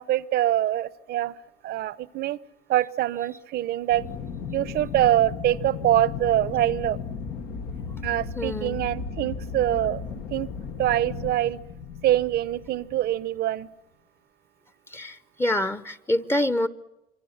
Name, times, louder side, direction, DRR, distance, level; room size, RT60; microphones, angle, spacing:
voice 1, 0.0-1.3 1.6-2.4 2.7-4.0 4.5-7.0 8.0-10.5 10.8-11.6 12.0-13.7, right 13 dB, 70° right, 18 dB, 0.8 m, -24 dB
Aircraft, 3.9-13.4, left 6 dB, 80° left, 1.8 m, -35 dB
voice 2, 8.3-8.8 14.9-16.7, left 1 dB, 15° left, 13 dB, 0.8 m, -26 dB
26.5 x 24.5 x 7.3 m, 0.94 s
cardioid pair, 110°, 17 cm